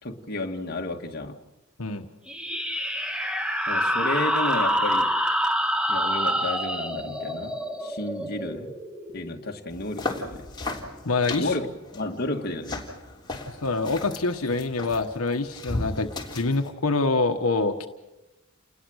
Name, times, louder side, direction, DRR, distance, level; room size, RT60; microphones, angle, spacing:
voice 1, 0.0-1.4 3.7-5.1 5.9-8.8 9.1-10.5 11.4-11.7 11.9-12.8, left 2 dB, 45° left, 2 dB, 1.9 m, -32 dB
sound 1, 2.3-9.5, equal, 5° right, 1.5 m, -27 dB
sound 2, 9.7-16.7, left 2 dB, 20° left, 3.5 m, -36 dB
voice 2, 11.0-11.5 13.5-17.9, left 3 dB, 80° left, 5 dB, 1.3 m, -26 dB
29.5 x 20.5 x 6.4 m, 1.0 s
head